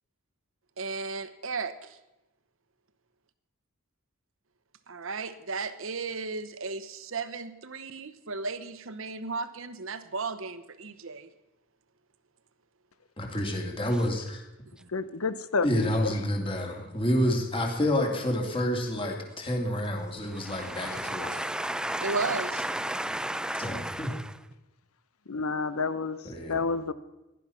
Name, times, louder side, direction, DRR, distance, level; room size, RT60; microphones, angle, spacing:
voice 1, 0.8-2.0 4.9-11.3 14.8-14.9 22.0-22.7, right 4 dB, 65° right, 1.1 m, -35 dB
voice 2, 13.2-14.4 15.6-21.4 23.5-24.1 26.2-26.6, equal, 25° left, 2.7 m, -29 dB
voice 3, 14.9-16.1 25.3-26.2 26.5-26.9, left 4 dB, 85° left, 0.9 m, -29 dB
voice 4, 20.6-24.2, right 1 dB, 5° right, 0.6 m, -32 dB
16.5 x 11.5 x 5.8 m
head